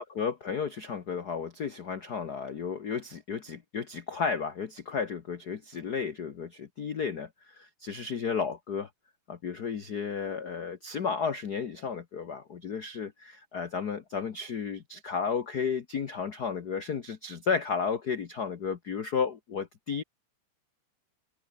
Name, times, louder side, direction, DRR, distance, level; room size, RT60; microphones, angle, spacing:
voice 1, 0.0-8.9 9.3-20.0, left 6 dB, 60° left, 1.0 m, -33 dB
omnidirectional pair, 3.6 m